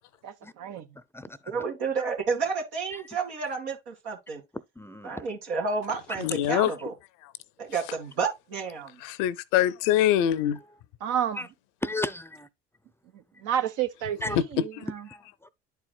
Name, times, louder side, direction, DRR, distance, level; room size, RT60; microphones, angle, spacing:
voice 1, 0.2-0.9 11.0-11.5 13.1-15.1, right 9 dB, 70° right, 1.1 m, -31 dB
voice 2, 0.9-1.6 2.9-3.0 4.8-5.2 11.4-11.5 11.8-12.5 14.2-14.4 15.1-15.5, left 1 dB, 10° left, 0.6 m, -35 dB
voice 3, 1.5-4.4 5.0-6.9 7.6-9.0, right 5 dB, 85° right, 2.3 m, -31 dB
voice 4, 6.2-6.7 9.0-10.6, left 12 dB, 75° left, 0.7 m, -24 dB
11.0 x 4.7 x 2.2 m
hypercardioid pair, 65°, 32 cm